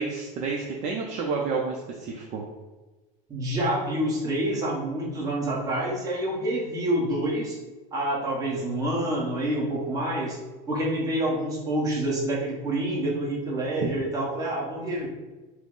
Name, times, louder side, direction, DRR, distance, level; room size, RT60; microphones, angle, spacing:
voice 1, 0.0-2.4, right 4 dB, 40° right, 0 dB, 0.5 m, -30 dB
voice 2, 3.3-7.6 7.9-10.4 10.7-15.1, right 1 dB, 20° right, -4 dB, 1.0 m, -27 dB
5.9 x 2.0 x 3.7 m, 1.2 s
cardioid pair, 170°, 19 cm